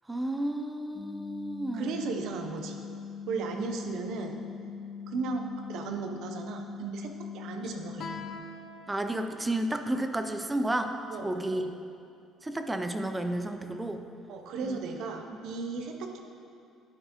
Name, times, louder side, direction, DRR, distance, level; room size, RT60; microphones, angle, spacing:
voice 1, 0.1-1.8 8.9-10.9 11.2-11.6 12.4-14.1 14.6-14.8, right 1 dB, 10° right, 7 dB, 0.3 m, -31 dB
sound 1, 0.9-8.4, left 6 dB, 20° left, 1.4 m, -42 dB
voice 2, 1.7-2.8 3.3-4.4 5.1-5.4 5.7-8.3 11.1-11.7 14.3-16.2, right 4 dB, 70° right, 4 dB, 0.6 m, -35 dB
Guitar, 8.0-11.2, left 5 dB, 50° left, 0.5 m, -47 dB
10.0 x 4.4 x 2.9 m, 2.5 s
cardioid pair, 135°, 0 cm